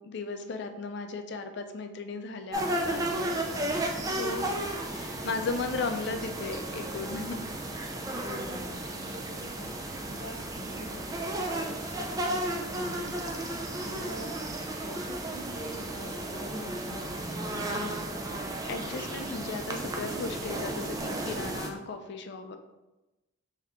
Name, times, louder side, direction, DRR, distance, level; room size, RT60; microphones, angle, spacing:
voice 1, 0.0-4.5 4.9-7.4 13.8-14.1 18.7-22.6, left 4 dB, 60° left, 7 dB, 0.4 m, -36 dB
sound 1, 2.5-21.7, right 1 dB, 20° right, 0.3 m, -34 dB
voice 2, 8.1-9.7 10.0-11.2 11.4-13.3 14.0-18.2, left 1 dB, 30° left, -4 dB, 1.0 m, -44 dB
3.6 x 2.7 x 3.4 m, 1.0 s
head